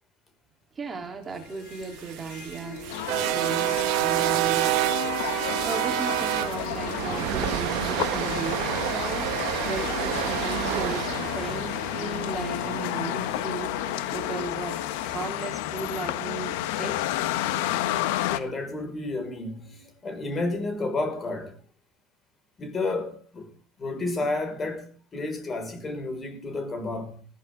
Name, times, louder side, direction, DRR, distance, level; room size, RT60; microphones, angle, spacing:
voice 1, 0.8-2.8 3.3-4.8 5.6-13.8 14.1-17.0, right 4 dB, 25° right, 3.6 m, -36 dB
Harp, 1.3-18.6, left 3 dB, 65° left, 7.7 m, -47 dB
sound 1, 1.8-14.0, right 16 dB, 70° right, 1.3 m, -29 dB
sound 2, 2.9-18.4, left 14 dB, 85° left, 1.2 m, -31 dB
voice 2, 18.3-21.6 22.6-23.5 23.8-27.2, left 2 dB, 30° left, 5.8 m, -31 dB
20.5 x 14.5 x 3.8 m
supercardioid pair, 100°, 0 cm